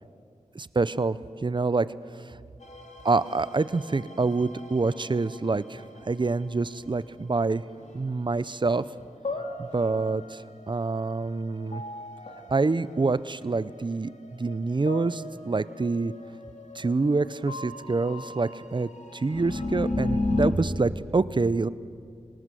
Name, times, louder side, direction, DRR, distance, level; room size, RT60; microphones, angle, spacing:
voice 1, 0.5-1.9 3.0-7.6 7.9-8.8 9.6-11.8 12.5-16.1 16.7-21.7, right 3 dB, 35° right, 16 dB, 0.7 m, -26 dB
sound 1, 2.6-6.5 7.7-8.2 8.6-20.5, left 2 dB, 65° left, 2.9 m, -36 dB
25.0 x 19.0 x 7.7 m, 2.3 s
wide cardioid pair, 65°, 13 cm